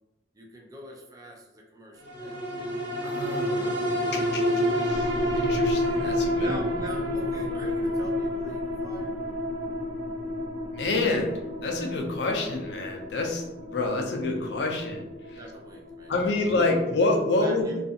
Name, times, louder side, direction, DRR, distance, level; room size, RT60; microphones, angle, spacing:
voice 1, 0.3-2.6 4.2-4.5 6.4-9.1 15.3-16.3 16.6-16.8 17.4-17.8, right 1 dB, 20° right, -1 dB, 0.4 m, -43 dB
sound 1, 2.0-16.7 17.1-17.2, left 1 dB, 80° right, 0.8 m, -29 dB
voice 2, 3.0-4.4 4.8-6.6 10.7-15.4 16.1-17.7, left 2 dB, 70° left, 3 dB, 0.4 m, -28 dB
2.4 x 2.4 x 2.7 m, 1.0 s
head